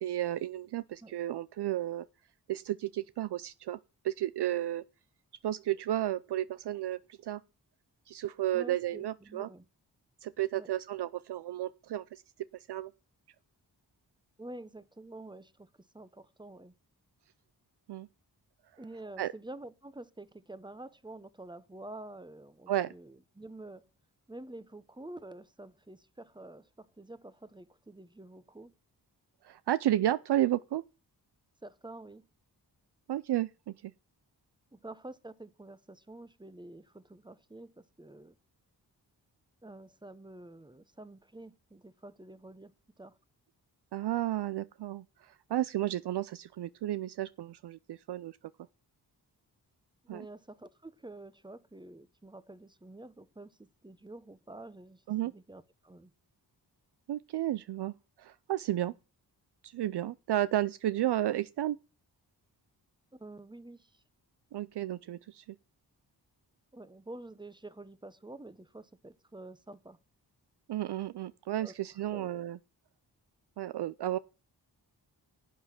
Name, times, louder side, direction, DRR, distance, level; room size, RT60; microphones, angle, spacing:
voice 1, 0.0-2.1 2.5-3.8 4.0-4.8 5.4-7.4 8.1-9.5 10.2-12.2 12.7-12.9 17.9-18.1 19.2-19.3 22.7-22.9 29.4-30.8 33.1-33.9 43.9-48.4 50.1-50.2 55.1-55.3 57.1-58.9 59.6-61.8 64.5-65.6 70.7-72.6 73.6-74.2, right 13 dB, 70° right, 0.5 m, -32 dB
voice 2, 8.5-9.7 10.5-10.7 14.4-15.7 15.9-16.8 18.8-23.9 24.3-28.7 31.6-32.3 34.7-38.4 39.6-42.7 43.0-43.2 50.0-56.1 63.1-64.0 66.7-70.0 71.6-71.8 72.1-72.5, right 2 dB, 10° right, 0.9 m, -48 dB
11.0 x 8.1 x 5.9 m
cardioid pair, 45°, 42 cm